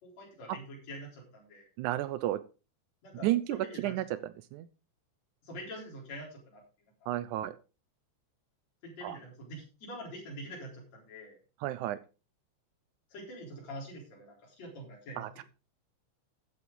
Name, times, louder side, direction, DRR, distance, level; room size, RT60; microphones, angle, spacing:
voice 1, 0.0-1.7 3.0-4.0 5.4-6.6 8.8-11.4 13.1-15.3, equal, 60° left, -4 dB, 5.4 m, -45 dB
voice 2, 1.8-2.4 3.2-4.0 4.5-4.7 7.1-7.6 9.0-9.2 11.6-12.0 15.2-15.4, right 14 dB, 85° right, 13 dB, 2.1 m, -32 dB
14.0 x 9.6 x 3.8 m, 0.33 s
omnidirectional pair, 3.4 m